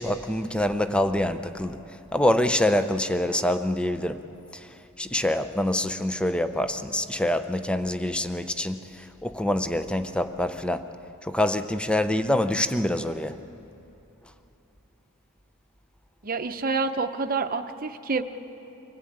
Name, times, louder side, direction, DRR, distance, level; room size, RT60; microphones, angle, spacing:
voice 1, 0.0-1.8 2.1-4.3 4.5-10.9 11.2-13.4, left 1 dB, 5° left, 10 dB, 0.6 m, -26 dB
voice 2, 16.2-18.2, right 4 dB, 40° right, 7 dB, 0.8 m, -27 dB
25.0 x 18.0 x 8.7 m, 3.0 s
head